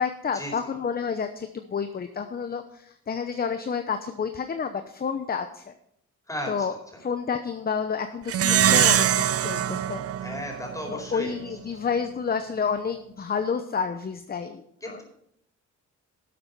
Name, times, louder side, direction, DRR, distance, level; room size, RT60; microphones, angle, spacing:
voice 1, 0.0-5.7 6.5-10.0 10.9-15.0, left 6 dB, 30° left, 9 dB, 0.8 m, -30 dB
voice 2, 6.3-6.7 6.9-7.0 10.2-11.3 14.8-15.0, equal, 10° left, 1 dB, 4.5 m, -35 dB
Plucked string instrument, 8.3-11.1, right 10 dB, 50° right, 0.6 m, -23 dB
12.0 x 7.7 x 5.5 m, 0.72 s
cardioid pair, 100°, 30 cm